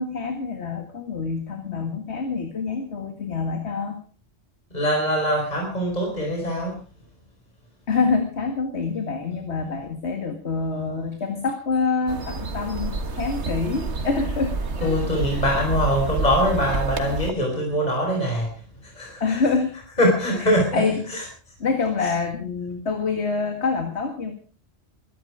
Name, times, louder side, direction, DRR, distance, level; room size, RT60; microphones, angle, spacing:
voice 1, 0.0-4.0 7.9-15.5 19.2-19.7 20.0-21.2 21.6-24.3, left 4 dB, 60° left, 5 dB, 2.2 m, -26 dB
voice 2, 4.7-6.8 14.8-18.5 19.0-19.2 20.0-20.8, equal, 35° left, 0 dB, 5.0 m, -22 dB
sound 1, 12.1-17.3, right 3 dB, 60° right, 1.8 m, -28 dB
22.0 x 12.0 x 4.9 m, 0.41 s
omnidirectional pair, 1.3 m